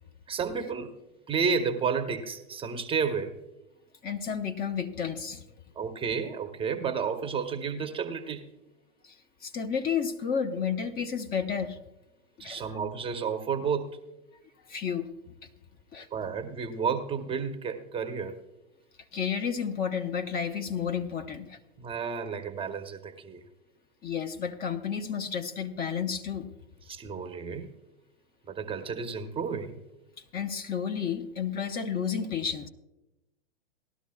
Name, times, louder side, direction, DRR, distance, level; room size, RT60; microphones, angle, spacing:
voice 1, 0.3-1.0 1.3-3.4 5.8-8.5 12.4-14.0 16.1-18.4 21.8-23.4 26.9-27.7 28.5-29.8, right 6 dB, 20° right, 7 dB, 0.7 m, -31 dB
voice 2, 4.0-5.4 9.0-9.2 9.4-11.8 12.4-12.8 14.7-15.5 15.9-16.1 19.1-21.6 24.0-26.5 30.3-32.7, left 7 dB, 30° left, 7 dB, 0.9 m, -31 dB
17.5 x 12.5 x 2.3 m, 0.98 s
hypercardioid pair, 105°, 30 cm